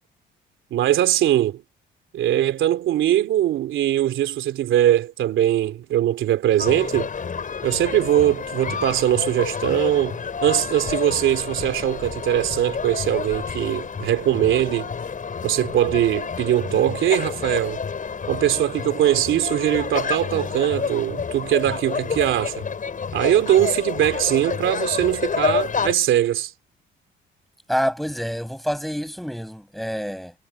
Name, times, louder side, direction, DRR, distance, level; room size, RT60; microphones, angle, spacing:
voice 1, 0.7-1.6 2.1-7.1 7.6-14.9 15.4-17.8 18.3-22.6 23.1-26.5, right 12 dB, 80° right, 3.1 m, -21 dB
sound 1, 6.6-25.9, left 6 dB, 40° left, 6.8 m, -29 dB
voice 2, 27.7-30.3, equal, ahead, 7.4 m, -27 dB
cardioid pair, 90°, 20 cm